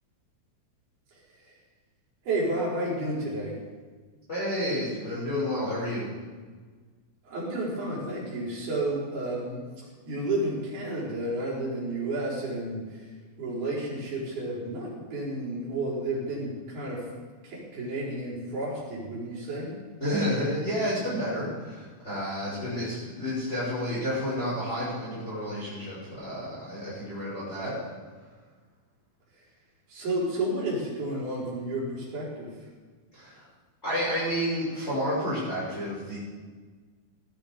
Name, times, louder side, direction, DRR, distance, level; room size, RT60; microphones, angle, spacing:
voice 1, 1.1-1.5 2.2-3.6 7.2-9.6 10.0-13.1 13.4-17.1 17.4-19.7 29.9-32.5, right 1 dB, 80° right, -6 dB, 6.7 m, -31 dB
voice 2, 4.3-6.1 20.0-27.8 33.2-33.4 33.8-36.2, equal, 15° left, -11 dB, 6.2 m, -30 dB
18.5 x 12.0 x 5.3 m, 1.5 s
omnidirectional pair, 4.3 m